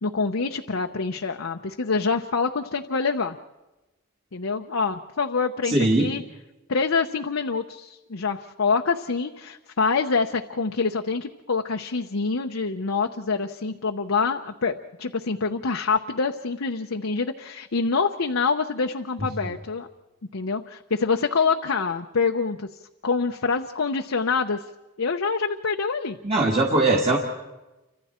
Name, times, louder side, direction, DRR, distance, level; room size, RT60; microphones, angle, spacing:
voice 1, 0.0-3.4 4.3-6.2 6.7-14.7 15.0-19.9 20.3-22.7 23.0-24.6 25.0-26.2, left 4 dB, 75° left, 4 dB, 0.8 m, -26 dB
voice 2, 5.6-6.1 26.2-27.2, right 2 dB, 25° right, -1 dB, 1.8 m, -20 dB
29.0 x 25.5 x 4.4 m, 1.1 s
head